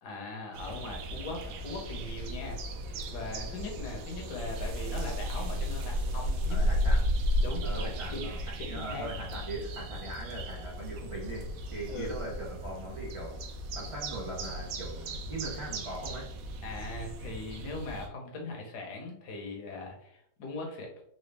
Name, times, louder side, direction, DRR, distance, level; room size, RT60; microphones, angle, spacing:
voice 1, 0.0-2.6 3.1-6.8 7.4-8.3 8.6-9.1 11.9-12.1 16.6-21.0, left 2 dB, 70° left, 0 dB, 1.4 m, -40 dB
sound 1, 0.5-18.1, equal, 90° right, 1.3 m, -34 dB
voice 2, 6.5-7.1 7.6-8.4 8.7-13.4 13.7-16.3, right 1 dB, 50° right, -4 dB, 0.3 m, -40 dB
3.9 x 2.3 x 3.3 m, 0.70 s
omnidirectional pair, 1.9 m